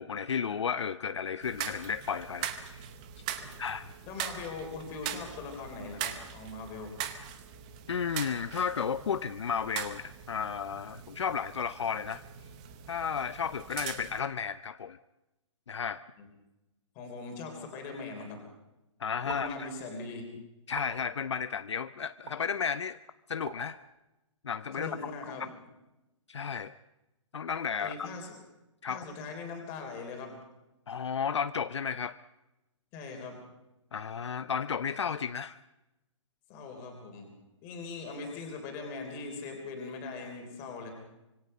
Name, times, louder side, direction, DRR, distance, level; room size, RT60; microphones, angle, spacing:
voice 1, 0.0-2.5 3.6-3.9 7.9-12.2 12.9-15.0 15.7-16.0 19.0-19.7 20.7-23.0 23.3-23.8 24.4-24.9 26.3-26.7 27.3-28.1 28.8-29.1 30.9-32.2 33.9-35.6, left 6 dB, 60° left, 13 dB, 0.7 m, -33 dB
sound 1, 1.4-14.2, right 10 dB, 15° right, 0.8 m, -41 dB
voice 2, 4.0-6.9 16.2-16.3 17.0-18.4 19.2-20.3 24.7-25.5 27.8-28.3 28.9-30.3 32.9-33.4 36.5-37.3 37.6-40.9, left 4 dB, 15° left, 3 dB, 3.3 m, -41 dB
sound 2, 19.3-19.4 20.7-20.9 22.3-22.4 23.4-23.6, right 8 dB, 35° right, 2.5 m, -41 dB
25.5 x 24.0 x 5.5 m, 0.98 s
hypercardioid pair, 175°, 17 cm